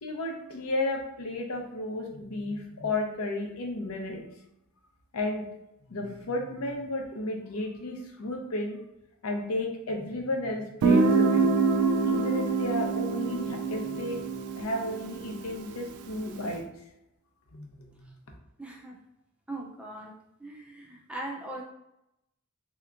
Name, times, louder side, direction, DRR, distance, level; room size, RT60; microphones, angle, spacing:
voice 1, 0.0-4.2 5.1-5.4 5.9-8.8 9.2-11.5 12.1-16.6 17.5-18.1, left 2 dB, 80° left, 2 dB, 0.7 m, -33 dB
Guitar, 10.8-16.4, right 4 dB, 80° right, 0.3 m, -26 dB
voice 2, 18.6-18.9 19.5-21.6, right 1 dB, 5° right, -1 dB, 0.4 m, -40 dB
3.4 x 2.8 x 2.4 m, 0.83 s
head